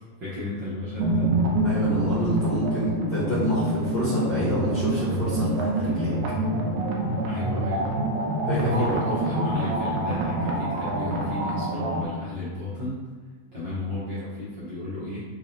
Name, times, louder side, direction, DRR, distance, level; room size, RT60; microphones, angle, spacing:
voice 1, 0.2-1.3 7.2-7.9 8.5-13.0 13.5-15.2, left 2 dB, 60° right, -11 dB, 1.2 m, -33 dB
sound 1, 1.0-12.1, right 1 dB, 80° right, 1.7 m, -26 dB
voice 2, 1.6-6.1 8.5-8.9, left 1 dB, 55° left, -11 dB, 1.4 m, -28 dB
5.8 x 3.1 x 2.7 m, 1.5 s
omnidirectional pair, 3.3 m